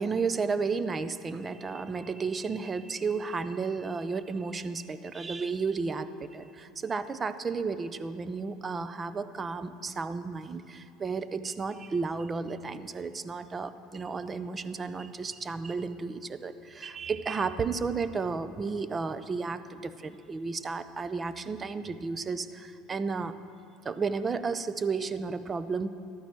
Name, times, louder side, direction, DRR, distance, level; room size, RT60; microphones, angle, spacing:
voice 1, 0.0-23.4 23.8-25.9, right 4 dB, 30° right, 13 dB, 0.7 m, -33 dB
13.5 x 12.0 x 4.6 m, 2.5 s
hypercardioid pair, 75°, 0 cm